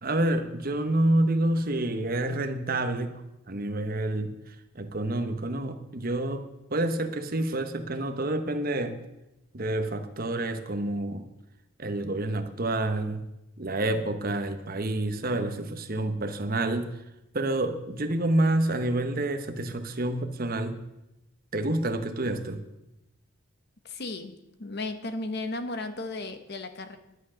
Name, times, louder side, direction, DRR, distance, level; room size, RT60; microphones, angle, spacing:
voice 1, 0.0-3.2 3.5-9.0 9.5-11.3 11.8-13.2 13.6-17.0 17.3-20.8 21.5-22.6, right 1 dB, 45° right, 8 dB, 1.1 m, -28 dB
voice 2, 23.8-24.3 24.6-27.0, left 2 dB, 50° left, 9 dB, 1.0 m, -34 dB
11.0 x 9.9 x 6.4 m, 0.91 s
head